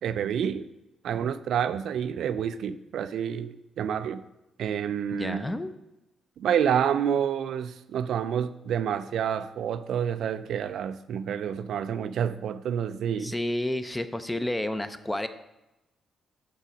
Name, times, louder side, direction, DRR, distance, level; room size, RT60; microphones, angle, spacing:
voice 1, 0.0-0.7 1.0-4.2 4.6-5.5 6.4-13.3, right 8 dB, 75° right, 12 dB, 0.3 m, -28 dB
voice 2, 5.1-5.7 13.2-15.3, left 1 dB, 10° left, 11 dB, 0.5 m, -30 dB
6.1 x 5.5 x 5.0 m, 0.97 s
cardioid pair, 100°, 0 cm